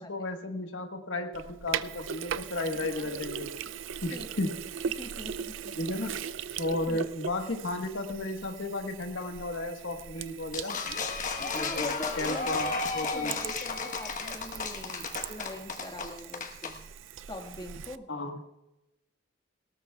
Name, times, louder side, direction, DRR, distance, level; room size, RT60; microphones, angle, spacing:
voice 1, 0.0-3.5 4.0-4.5 5.7-6.2 6.6-10.8 11.5-13.3 18.1-18.4, left 2 dB, 75° left, 5 dB, 1.4 m, -34 dB
Sink (filling or washing), 1.3-18.0, right 8 dB, 75° right, 0.4 m, -40 dB
voice 2, 2.8-3.2 4.1-4.3 5.0-5.7 6.9-7.0 11.4-16.8 17.3-18.1, left 1 dB, 20° left, 2 dB, 1.8 m, -42 dB
sound 1, 10.5-16.8, left 4 dB, 40° left, 1.2 m, -34 dB
19.0 x 18.0 x 2.3 m, 0.93 s
head